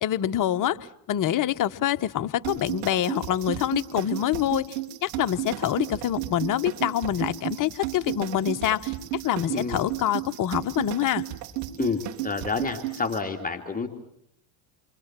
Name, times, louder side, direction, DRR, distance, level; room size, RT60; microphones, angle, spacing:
voice 1, 0.0-0.8 1.1-8.9 9.2-11.2, left 11 dB, 40° left, 1.1 m, -26 dB
sound 1, 2.4-13.2, right 15 dB, 75° right, 3.0 m, -34 dB
voice 2, 11.8-13.9, left 4 dB, 15° left, 2.7 m, -29 dB
29.0 x 24.5 x 7.5 m
hypercardioid pair, 80°, 49 cm